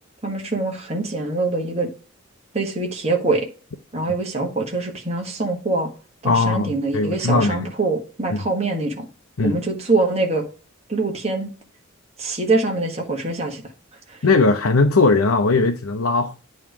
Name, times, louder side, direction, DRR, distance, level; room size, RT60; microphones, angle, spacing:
voice 1, 0.2-1.9 2.5-3.5 3.9-5.9 6.2-9.0 9.4-10.4 10.9-11.5 12.2-13.6 14.1-14.2, right 3 dB, 30° right, 1.5 m, -24 dB
voice 2, 6.2-7.7 8.3-8.4 9.4-9.6 14.2-16.3, left 3 dB, 85° left, 0.7 m, -19 dB
8.9 x 3.2 x 4.6 m
head